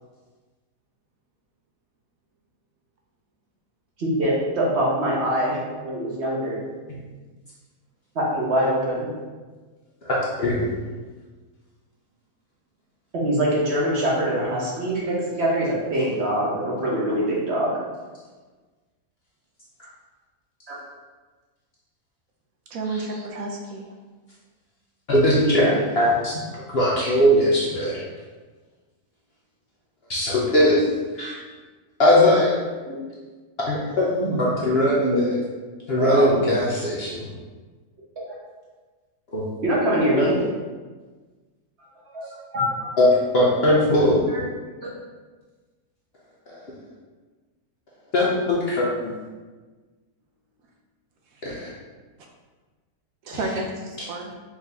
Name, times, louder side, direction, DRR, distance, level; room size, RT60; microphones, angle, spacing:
voice 1, 4.0-6.6 8.1-9.1 13.1-17.8 20.7-20.8 25.4-25.7 32.9-33.0 34.2-35.2 36.0-36.3 39.6-40.4 42.2-42.7 43.7-43.8 44.3-44.4, right 1 dB, 50° right, -5 dB, 1.1 m, -24 dB
voice 2, 10.0-10.7 22.9-23.0 25.1-28.0 30.1-30.8 31.1-31.4 32.0-32.6 33.7-35.3 35.9-37.3 39.3-39.4 40.2-40.3 43.0-43.1 43.3-44.3 46.5-46.6 48.1-49.1 51.4-51.7, left 1 dB, 55° left, -6 dB, 0.7 m, -20 dB
voice 3, 22.7-23.9 53.2-54.4, right 2 dB, 70° right, 0 dB, 0.9 m, -31 dB
4.7 x 2.7 x 3.4 m, 1.3 s
omnidirectional pair, 1.6 m